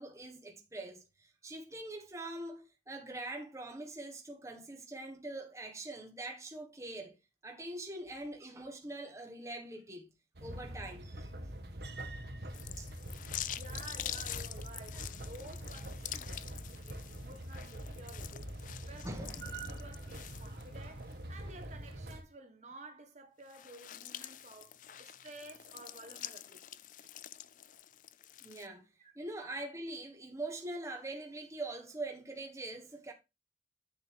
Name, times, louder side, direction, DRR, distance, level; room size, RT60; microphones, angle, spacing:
voice 1, 0.0-7.1 7.4-10.1 10.4-11.6 12.8-12.9 19.0-19.4 28.4-28.8 29.1-33.1, right 2 dB, 15° right, 1.5 m, -43 dB
sound 1, 10.4-22.2, right 1 dB, 65° right, 1.5 m, -44 dB
sound 2, 12.5-21.1 21.6-21.7 23.4-28.7, left 12 dB, 45° left, 0.4 m, -46 dB
voice 2, 13.6-26.6 27.0-27.1 29.0-29.1, right 2 dB, 40° right, 1.4 m, -53 dB
10.5 x 6.6 x 3.5 m
head